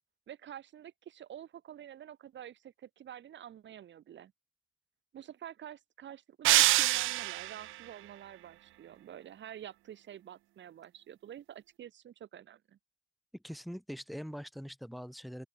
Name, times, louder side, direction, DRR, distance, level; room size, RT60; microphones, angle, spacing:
voice 1, 0.3-4.3 5.1-12.8, right 10 dB, 65° right, 4.5 m, -48 dB
sound 1, 6.4-7.7, right 18 dB, 85° right, 0.5 m, -25 dB
voice 2, 13.3-15.5, equal, ahead, 7.3 m, -43 dB
open air
cardioid pair, 90°, 20 cm